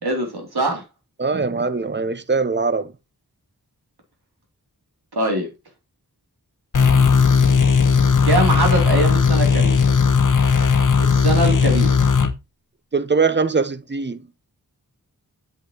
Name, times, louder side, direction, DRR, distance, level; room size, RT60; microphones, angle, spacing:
voice 1, 0.0-0.8 5.1-5.5 8.2-9.8 11.0-12.1, right 2 dB, 80° right, 3.0 m, -22 dB
voice 2, 1.2-2.9 12.9-14.2, right 4 dB, 30° right, 0.7 m, -21 dB
sound 1, 6.7-12.3, left 5 dB, 55° left, 0.9 m, -16 dB
8.2 x 7.8 x 2.9 m
wide cardioid pair, 70°, 37 cm